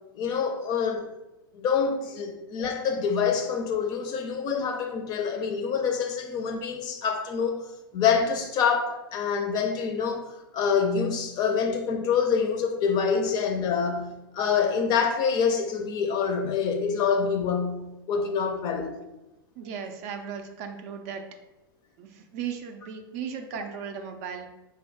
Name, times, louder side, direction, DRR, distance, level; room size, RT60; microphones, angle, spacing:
voice 1, 0.1-1.1 1.5-7.6 7.9-18.9, left 6 dB, 35° left, 0.5 m, -26 dB
voice 2, 19.6-21.2 22.0-24.5, right 7 dB, 45° right, 0.4 m, -36 dB
4.0 x 2.2 x 3.5 m
figure-of-eight pair, 100°, 12 cm